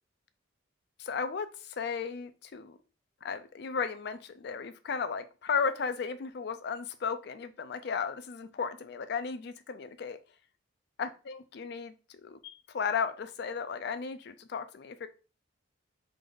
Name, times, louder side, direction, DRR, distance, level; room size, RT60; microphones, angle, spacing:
voice 1, 1.0-2.8 3.2-10.2 11.0-15.1, left 6 dB, 55° left, 11 dB, 0.4 m, -35 dB
3.3 x 2.5 x 3.8 m, 0.34 s
head